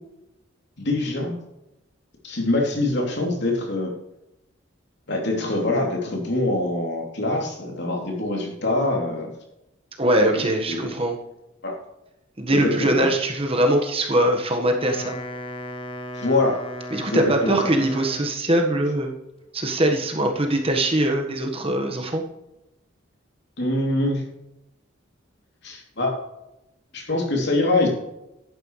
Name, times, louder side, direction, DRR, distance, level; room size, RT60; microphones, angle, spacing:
voice 1, 0.8-1.3 2.2-3.9 5.1-9.3 10.3-10.9 11.6-11.7 12.5-13.1 16.1-16.6 17.1-17.6 23.6-24.2 25.6-26.2 26.9-27.9, left 2 dB, 55° left, 0 dB, 3.1 m, -24 dB
voice 2, 10.0-11.2 12.4-15.2 16.9-19.1 19.5-22.2, right 1 dB, 30° right, 3 dB, 1.4 m, -22 dB
Wind instrument woodwind instrument, 14.6-18.5, left 1 dB, 25° left, 1.0 m, -36 dB
11.0 x 9.6 x 3.2 m, 0.90 s
head